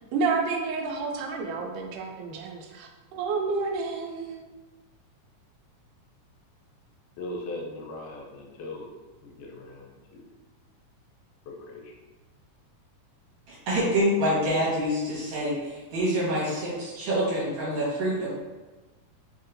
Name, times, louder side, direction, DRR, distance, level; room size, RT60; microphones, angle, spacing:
voice 1, 0.1-4.4, right 4 dB, 85° right, 2 dB, 2.1 m, -30 dB
voice 2, 7.2-8.9 9.2-10.2 11.5-11.9, left 2 dB, 80° left, -1 dB, 2.1 m, -39 dB
voice 3, 13.5-18.3, equal, 65° right, -8 dB, 2.3 m, -26 dB
4.9 x 2.7 x 2.5 m, 1.2 s
omnidirectional pair, 3.6 m